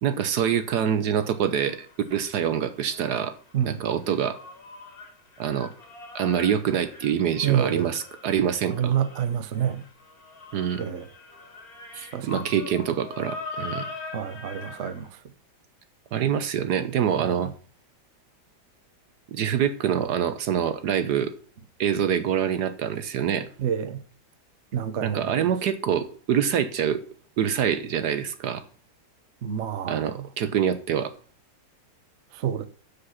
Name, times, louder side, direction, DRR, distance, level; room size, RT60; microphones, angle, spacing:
voice 1, 0.0-3.4 3.6-4.4 5.4-5.7 6.1-8.9 10.5-10.8 11.9-13.9 16.1-17.5 19.3-21.3 21.8-23.5 25.0-27.0 27.4-28.6 29.9-31.1, right 8 dB, 65° right, 1.3 m, -25 dB
sound 1, 1.2-3.3 3.5-15.1, left 3 dB, 50° left, 2.3 m, -42 dB
voice 2, 7.4-7.9 8.7-9.8 10.8-11.1 12.1-12.4 14.1-15.1 17.2-17.4 23.6-24.0 24.7-25.5 29.4-30.3 32.3-32.7, right 9 dB, 50° right, 1.0 m, -28 dB
7.4 x 6.8 x 5.6 m
omnidirectional pair, 2.0 m